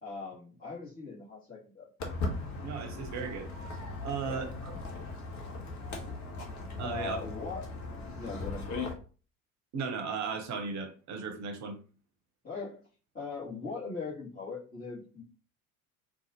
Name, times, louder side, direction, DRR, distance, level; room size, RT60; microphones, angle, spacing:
voice 1, 0.0-1.9 4.2-4.5 4.9-5.1 6.8-7.7 8.1-8.7 12.4-12.8 13.1-15.2, left 4 dB, 20° left, -8 dB, 1.6 m, -40 dB
Walk footsteps, 2.0-8.9, left 3 dB, 40° left, 1.0 m, -38 dB
voice 2, 2.6-3.5 4.0-4.8 6.8-7.2 9.7-11.8, right 5 dB, 40° right, 5 dB, 0.9 m, -36 dB
3.9 x 2.4 x 2.9 m, 0.37 s
figure-of-eight pair, 65°, 44 cm